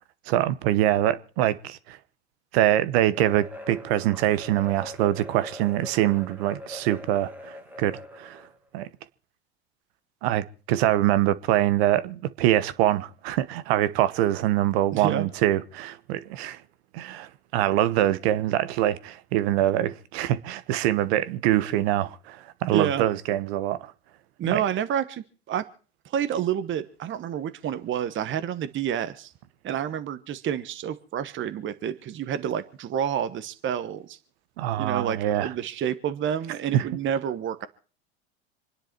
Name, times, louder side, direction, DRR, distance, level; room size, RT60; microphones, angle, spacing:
voice 1, 0.3-2.0 2.5-8.4 8.7-8.9 10.2-16.6 16.9-23.9 24.4-24.6 34.6-35.5 36.7-36.8, right 13 dB, 65° right, 1.1 m, -24 dB
sound 1, 3.1-8.6, left 1 dB, 5° right, 1.9 m, -43 dB
voice 2, 14.9-15.3 22.7-23.0 24.4-25.7 26.0-29.3 29.6-34.2 34.8-37.7, right 9 dB, 35° right, 1.2 m, -29 dB
27.0 x 10.0 x 4.5 m
hypercardioid pair, 85°, 33 cm